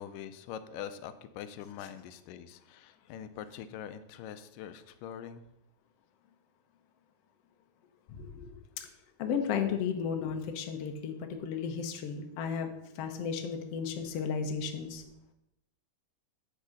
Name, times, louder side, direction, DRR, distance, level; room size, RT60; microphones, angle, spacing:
voice 1, 0.0-5.4, left 9 dB, 85° left, 11 dB, 2.2 m, -43 dB
voice 2, 8.1-8.5 9.2-15.0, left 6 dB, 70° left, 5 dB, 1.5 m, -34 dB
9.0 x 4.9 x 6.4 m, 0.83 s
omnidirectional pair, 3.8 m